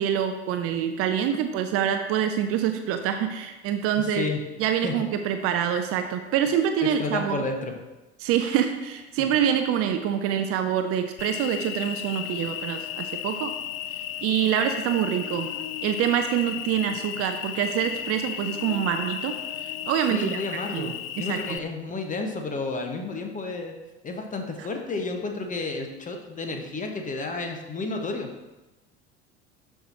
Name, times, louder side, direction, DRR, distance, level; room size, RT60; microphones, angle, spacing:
voice 1, 0.0-4.3 4.6-7.5 8.2-13.5 14.2-15.5 15.8-20.4 20.7-21.6 24.6-24.7, right 9 dB, 45° right, 7 dB, 0.6 m, -26 dB
voice 2, 4.0-4.4 4.8-4.9 6.8-7.7 9.2-9.3 20.1-23.7 24.0-28.3, left 3 dB, 25° left, 4 dB, 1.2 m, -31 dB
Cricket, 11.2-21.6, left 11 dB, 60° left, 0.5 m, -34 dB
11.5 x 4.6 x 2.8 m, 1.1 s
figure-of-eight pair, 65°, 33 cm